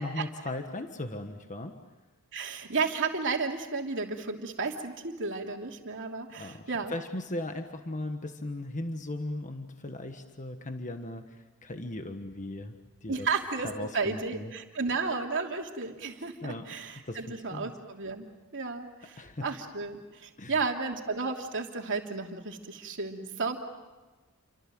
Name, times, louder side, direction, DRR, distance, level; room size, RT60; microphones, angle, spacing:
voice 1, 0.0-1.8 6.4-12.7 13.0-13.3 13.6-14.5 16.4-17.7 19.2-19.5 20.4-20.5, left 1 dB, 35° left, 6 dB, 1.4 m, -38 dB
voice 2, 2.3-6.9 13.1-18.3 18.5-23.6, right 4 dB, 60° right, 2 dB, 3.0 m, -33 dB
30.0 x 25.0 x 7.7 m, 1.2 s
head